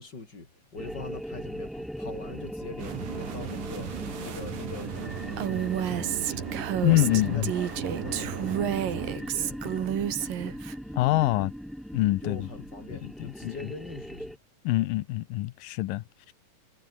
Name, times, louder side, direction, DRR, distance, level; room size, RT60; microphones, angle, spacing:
voice 1, 0.0-11.0 12.2-14.4, left 3 dB, 30° left, 5.6 m, -43 dB
sound 1, 0.8-14.4, equal, ahead, 1.9 m, -39 dB
sound 2, 2.8-9.2, right 7 dB, 65° right, 4.5 m, -37 dB
Female speech woman speaking, 5.4-10.8, right 10 dB, 80° right, 3.6 m, -30 dB
voice 2, 6.8-7.5 11.0-11.5 11.9-12.5 12.9-13.5 14.6-16.3, left 17 dB, 85° left, 2.5 m, -25 dB
omnidirectional pair, 3.9 m